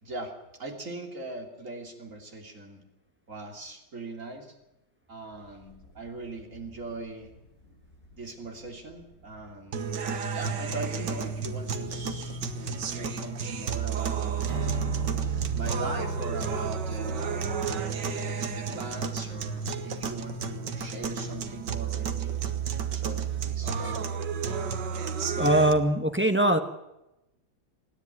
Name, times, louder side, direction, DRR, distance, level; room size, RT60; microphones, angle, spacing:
voice 1, 0.0-0.3 0.6-2.8 3.3-4.5 5.1-7.3 8.2-9.8 10.3-14.5 15.5-22.4 22.9-24.1, right 2 dB, 40° right, 2 dB, 3.4 m, -40 dB
sound 1, 5.3-23.8, left 1 dB, 45° left, 7.8 m, -54 dB
sound 2, 9.7-25.7, right 6 dB, 65° right, 1.9 m, -31 dB
Strum, 14.5-20.9, right 1 dB, 90° right, 4.4 m, -38 dB
voice 2, 25.4-26.6, right 1 dB, 10° right, 6 dB, 0.9 m, -22 dB
27.0 x 10.5 x 9.4 m, 0.91 s
omnidirectional pair, 2.2 m